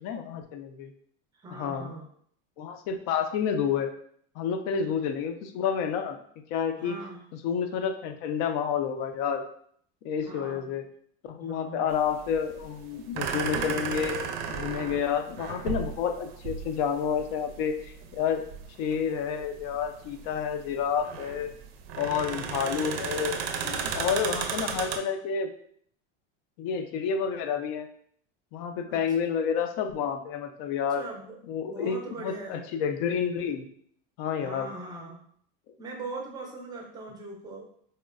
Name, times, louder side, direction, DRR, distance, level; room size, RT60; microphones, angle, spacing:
voice 1, 0.0-0.9 1.6-1.9 2.6-3.9 4.4-6.2 6.5-7.0 7.4-9.4 10.0-10.8 11.2-14.2 14.5-17.8 18.1-18.4 18.8-21.5 22.0-23.3 23.6-25.5 26.6-27.9 28.5-31.0 31.5-33.7 34.2-34.7, left 7 dB, 55° left, 6 dB, 0.5 m, -29 dB
voice 2, 1.3-2.1 4.9-5.0 6.8-7.2 10.2-10.7 11.4-11.9 28.9-29.0 31.0-31.4 31.6-32.6 34.4-35.2 35.8-37.7, right 2 dB, 15° right, 1 dB, 0.5 m, -40 dB
sound 1, 11.9-25.0, right 6 dB, 80° right, 0.5 m, -34 dB
4.1 x 2.1 x 2.4 m, 0.62 s
supercardioid pair, 145°, 30 cm